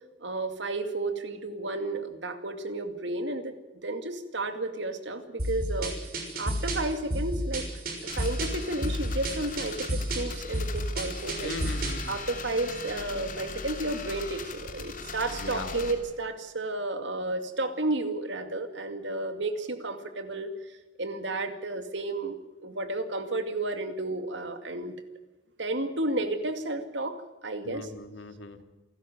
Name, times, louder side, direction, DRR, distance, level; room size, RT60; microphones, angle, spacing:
voice 1, 0.2-5.9 6.4-7.6 8.0-11.5 12.1-20.5 21.0-25.0 25.6-27.9, right 2 dB, 75° right, 8 dB, 2.4 m, -32 dB
sound 1, 5.4-12.1, right 1 dB, 50° right, 6.4 m, -31 dB
sound 2, 8.1-15.9, left 4 dB, 45° left, 3.1 m, -40 dB
voice 2, 11.4-12.1 15.4-15.8 27.6-28.6, left 2 dB, 90° left, 7 dB, 2.6 m, -38 dB
28.0 x 13.0 x 7.9 m, 1.1 s
head